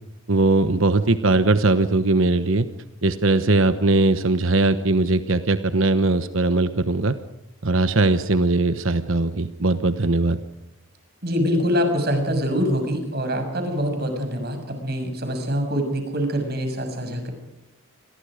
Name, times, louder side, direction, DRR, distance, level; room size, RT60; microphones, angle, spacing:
voice 1, 0.3-2.7 3.0-7.1 7.6-10.4, right 2 dB, 65° right, 10 dB, 1.1 m, -20 dB
voice 2, 11.2-17.3, equal, 45° right, 6 dB, 6.6 m, -24 dB
29.5 x 22.5 x 5.1 m, 0.89 s
head